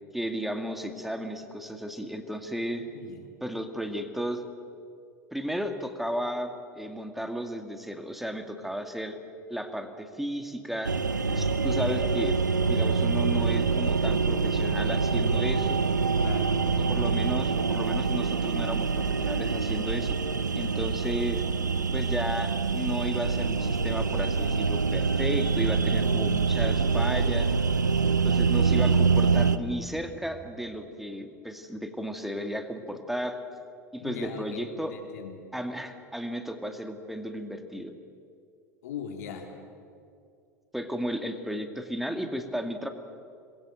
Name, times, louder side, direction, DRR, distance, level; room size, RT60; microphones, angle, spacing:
voice 1, 0.1-2.8 3.4-4.4 5.3-9.2 9.5-10.9 11.3-12.4 12.6-15.8 16.9-20.2 20.5-21.4 21.9-27.5 28.2-33.4 33.9-35.0 35.5-37.9 40.7-42.9, equal, ahead, 6 dB, 2.3 m, -34 dB
voice 2, 2.8-3.2 16.2-16.5 34.0-35.3 38.8-39.5, left 7 dB, 65° left, 2 dB, 3.9 m, -39 dB
sound 1, 10.8-29.6, right 5 dB, 85° right, 0.9 m, -25 dB
27.5 x 22.0 x 7.7 m, 2.4 s
figure-of-eight pair, 80°, 10 cm